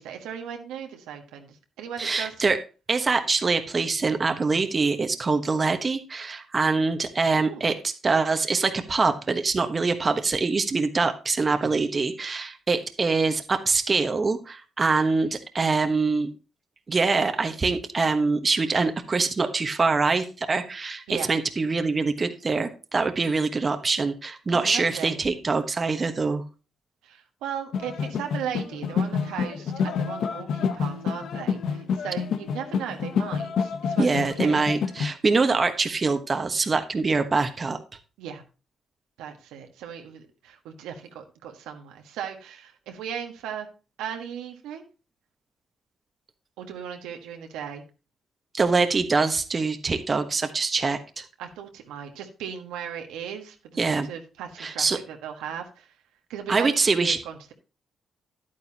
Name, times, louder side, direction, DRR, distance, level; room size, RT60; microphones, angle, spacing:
voice 1, 0.0-2.3 7.3-7.7 21.1-21.3 24.5-25.2 27.0-34.6 38.2-38.4 39.2-43.7 44.0-44.9 46.6-47.8 51.4-55.9 56.3-57.5, right 8 dB, 90° right, 4 dB, 1.5 m, -37 dB
voice 2, 2.0-2.6 2.9-16.3 16.9-26.4 34.0-37.8 48.5-51.2 53.8-54.1 54.6-55.0 56.5-57.2, right 4 dB, 40° right, 7 dB, 1.2 m, -24 dB
sound 1, 27.7-35.1, left 6 dB, 70° left, 0.9 m, -28 dB
10.5 x 9.2 x 2.9 m, 0.32 s
supercardioid pair, 60°, 0 cm